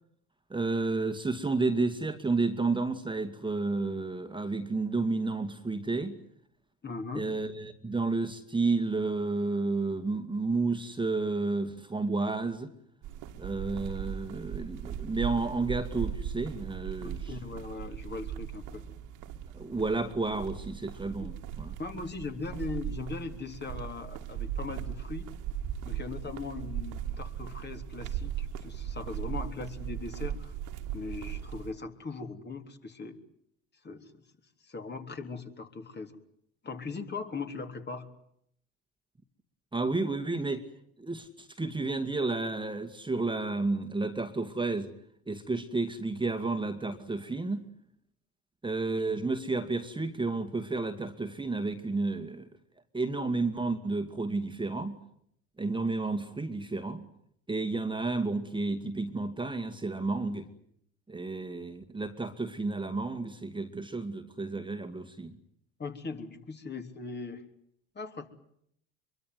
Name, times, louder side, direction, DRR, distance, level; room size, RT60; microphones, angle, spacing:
voice 1, 0.5-6.2 7.1-12.7 13.4-17.3 19.5-21.7 39.7-40.6 41.0-44.9 45.3-47.6 48.6-52.5 52.9-55.0 55.6-57.0 57.5-60.5 61.1-65.4, right 3 dB, 15° right, 7 dB, 2.3 m, -31 dB
voice 2, 6.8-7.3 17.0-18.9 21.2-21.3 21.8-25.3 25.8-30.5 30.9-33.2 33.8-34.2 34.6-36.2 36.6-38.1 65.8-67.4 68.0-68.3, left 4 dB, 30° left, 6 dB, 3.6 m, -39 dB
sound 1, 13.0-31.7, right 9 dB, 60° right, 2.5 m, -38 dB
24.0 x 23.5 x 9.5 m, 0.70 s
hypercardioid pair, 70°, 35 cm